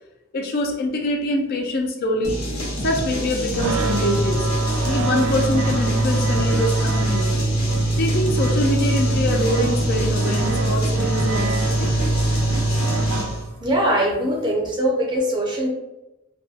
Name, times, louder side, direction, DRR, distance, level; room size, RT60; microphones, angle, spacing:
voice 1, 0.3-2.4 2.8-4.5 4.8-7.4 8.0-11.9, left 1 dB, 50° left, 2 dB, 0.4 m, -24 dB
sound 1, 2.2-13.4, equal, 80° left, 0.9 m, -28 dB
sound 2, 3.5-13.8, right 2 dB, 70° right, 0.4 m, -22 dB
voice 2, 13.6-15.7, right 1 dB, 20° right, -2 dB, 0.5 m, -21 dB
2.6 x 2.1 x 2.4 m, 0.96 s
head